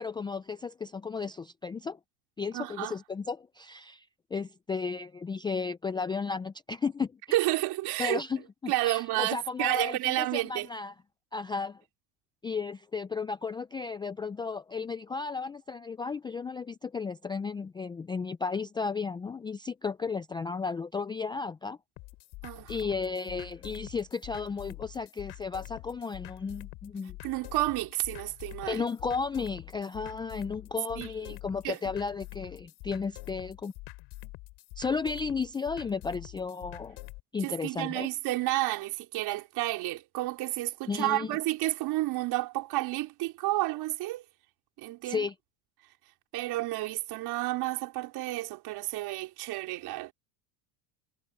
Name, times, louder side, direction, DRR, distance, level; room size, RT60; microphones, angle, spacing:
voice 1, 0.0-2.0 2.4-4.1 4.3-7.1 8.0-10.9 11.3-11.8 12.4-21.8 22.7-27.2 28.7-33.7 34.8-37.0 37.3-38.1 40.9-41.3 45.0-45.3, left 5 dB, 10° left, 0.3 m, -34 dB
voice 2, 2.5-3.0 7.3-8.2 8.7-10.7 22.4-22.7 27.2-28.8 31.0-31.2 31.6-31.8 37.4-44.2 44.8-45.2 46.3-50.1, right 17 dB, 55° right, 3.8 m, -31 dB
sound 1, 22.0-37.2, left 23 dB, 65° left, 6.3 m, -46 dB
supercardioid pair, 120°, 45 cm